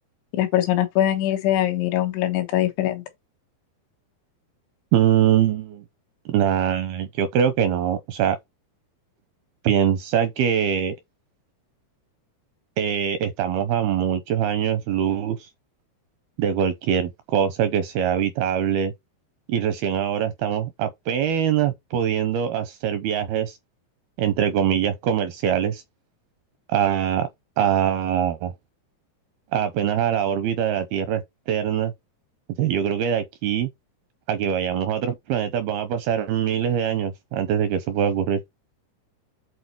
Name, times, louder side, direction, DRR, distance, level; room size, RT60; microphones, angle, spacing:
voice 1, 0.3-3.0, left 12 dB, 90° left, 3.6 m, -22 dB
voice 2, 4.9-5.8 6.3-8.4 9.6-10.9 12.8-15.5 16.4-18.9 19.5-23.6 24.2-25.8 26.7-27.3 27.6-28.5 29.5-31.9 32.6-33.7 34.3-38.4, right 9 dB, 85° right, 2.3 m, -23 dB
8.3 x 4.2 x 4.4 m
omnidirectional pair, 5.2 m